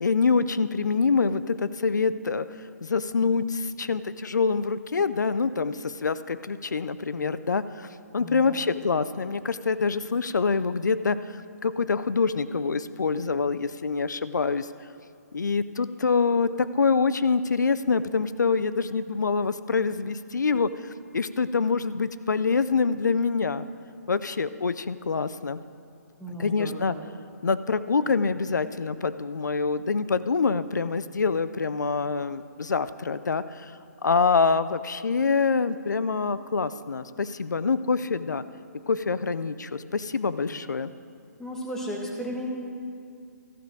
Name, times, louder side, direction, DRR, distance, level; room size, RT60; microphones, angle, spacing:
voice 1, 0.0-7.9 8.1-14.7 15.3-23.7 24.1-25.6 26.4-26.9 27.4-38.4 38.9-40.9, left 4 dB, 90° left, 14 dB, 0.4 m, -25 dB
voice 2, 8.2-8.6 26.2-27.1 41.4-42.5, equal, 5° left, -1 dB, 1.2 m, -35 dB
14.0 x 5.2 x 6.2 m, 2.4 s
hypercardioid pair, 150°, 9 cm